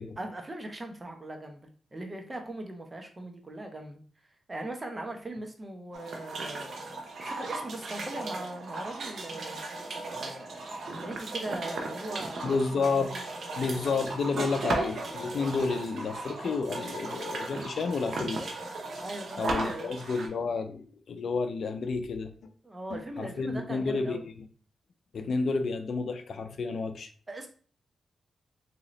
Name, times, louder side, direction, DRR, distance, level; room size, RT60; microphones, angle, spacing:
voice 1, 0.2-4.0 4.5-6.8 7.2-9.6 10.1-13.2 19.0-20.0 22.6-24.2 27.3-27.5, right 1 dB, 25° right, 4 dB, 0.9 m, -40 dB
sound 1, 5.9-20.3, right 2 dB, 70° right, 0.8 m, -36 dB
voice 2, 12.4-13.2 13.6-18.4 19.4-22.3 22.9-24.5 25.1-27.1, left 4 dB, 70° left, 9 dB, 0.4 m, -31 dB
3.7 x 2.8 x 3.1 m, 0.43 s
cardioid pair, 60°, 0 cm